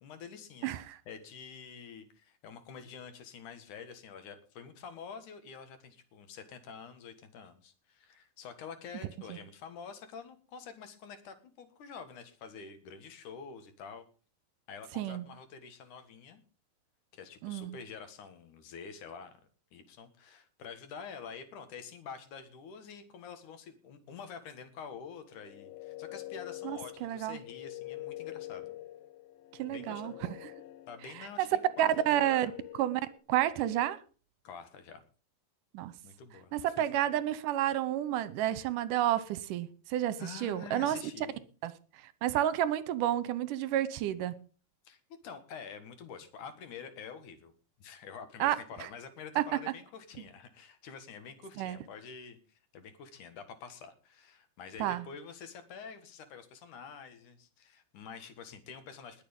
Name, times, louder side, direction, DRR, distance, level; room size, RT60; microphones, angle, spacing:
voice 1, 0.0-0.8 1.1-14.1 14.7-16.4 17.1-19.4 19.7-28.8 29.7-30.2 30.9-31.5 31.8-31.9 32.3-32.5 34.4-35.0 36.0-36.8 40.2-41.4 44.8-47.5 47.8-59.2, left 6 dB, 65° left, 3.0 m, -47 dB
voice 2, 0.6-1.0 9.3-9.4 15.0-15.3 17.4-17.8 26.6-27.4 29.6-30.4 31.4-31.5 31.8-32.5 32.8-33.0 33.3-34.0 35.7-35.9 36.5-41.0 41.6-41.7 42.2-44.3 48.4-48.6 49.4-49.5 51.6-51.8 54.8-55.0, right 12 dB, 75° right, 2.3 m, -30 dB
sound 1, 25.3-33.2, left 16 dB, 90° left, 2.7 m, -46 dB
20.5 x 7.0 x 5.3 m
omnidirectional pair, 4.1 m